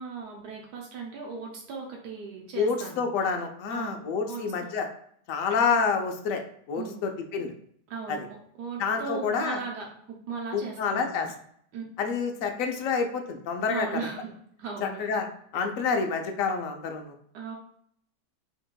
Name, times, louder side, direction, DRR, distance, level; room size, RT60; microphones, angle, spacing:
voice 1, 0.0-3.0 3.7-4.0 4.3-4.7 6.7-7.0 7.9-8.2 8.6-11.2 11.7-11.8 13.7-14.3 14.6-15.0 17.3-17.6, right 5 dB, 85° right, 0 dB, 1.3 m, -37 dB
voice 2, 2.6-4.9 5.3-6.4 6.7-7.5 8.1-8.3 8.8-9.6 10.5-11.3 12.0-14.1 14.8-15.3 15.5-17.1, left 5 dB, 65° left, 4 dB, 0.9 m, -28 dB
5.4 x 3.0 x 2.2 m, 0.67 s
omnidirectional pair, 1.7 m